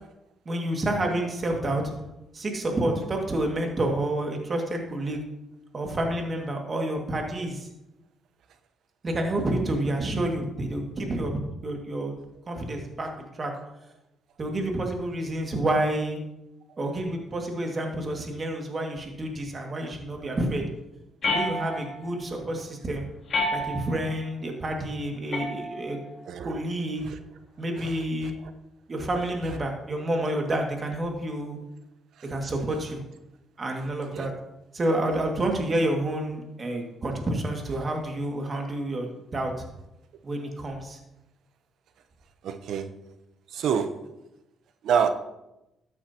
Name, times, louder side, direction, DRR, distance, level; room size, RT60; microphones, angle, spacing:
voice 1, 0.5-1.8 2.3-5.2 5.7-7.7 9.0-12.2 12.5-13.5 14.4-16.2 16.8-20.6 21.3-23.0 23.5-26.0 26.4-27.1 27.6-28.3 28.9-31.6 32.2-33.0 33.6-34.3 34.7-39.5 40.2-41.0, right 1 dB, 35° right, 2 dB, 2.1 m, -29 dB
sound 1, 21.2-22.1 23.3-24.1 25.3-26.1, left 1 dB, 50° left, 2.8 m, -29 dB
voice 2, 42.4-43.0 43.5-44.0 44.8-45.1, right 7 dB, 75° right, 9 dB, 0.8 m, -26 dB
13.5 x 9.2 x 2.9 m, 0.90 s
cardioid pair, 90°, 0 cm